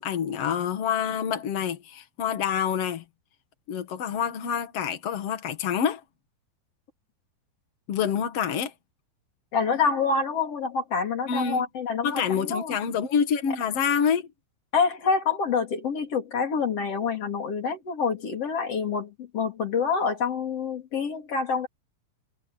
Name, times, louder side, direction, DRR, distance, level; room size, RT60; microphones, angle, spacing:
voice 1, 0.0-3.0 3.7-6.0 7.9-8.7 11.3-11.6 12.0-14.3, left 7 dB, 80° left, 1.3 m, -27 dB
voice 2, 9.5-12.8 14.7-21.7, left 5 dB, 35° left, 3.7 m, -27 dB
omnidirectional pair, 5.6 m